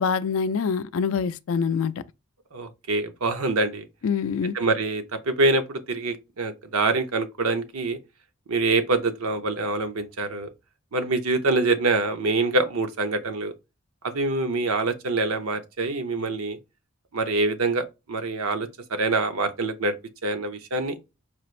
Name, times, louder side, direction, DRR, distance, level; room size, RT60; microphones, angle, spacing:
voice 1, 0.0-2.0 4.0-4.5, left 6 dB, 70° left, 0.4 m, -25 dB
voice 2, 2.5-3.9 4.5-8.0 8.5-10.5 10.9-13.5 14.0-16.6 17.1-20.0 20.2-21.0, right 3 dB, 85° right, 0.7 m, -25 dB
4.9 x 2.5 x 3.1 m
head